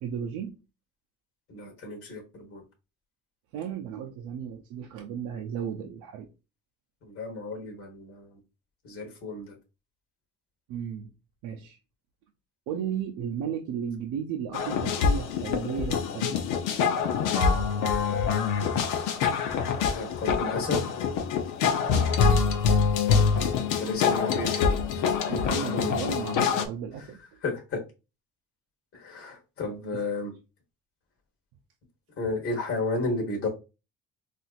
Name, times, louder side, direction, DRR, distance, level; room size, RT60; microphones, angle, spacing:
voice 1, 0.0-0.6 3.5-6.3 10.7-11.1 11.4-11.8 12.7-16.4 21.9-22.3 24.7-24.8 25.3-27.4 29.9-30.1, right 8 dB, 80° right, 0.5 m, -34 dB
voice 2, 1.5-2.6 7.0-8.4 8.8-9.6 17.9-18.4 19.9-21.1 23.7-25.1 27.4-27.8 28.9-30.3 32.2-33.5, left 3 dB, 50° left, 1.2 m, -33 dB
Calm background Music, 14.5-26.6, left 6 dB, 80° left, 0.7 m, -25 dB
4.1 x 2.5 x 2.4 m
cardioid pair, 100°, 31 cm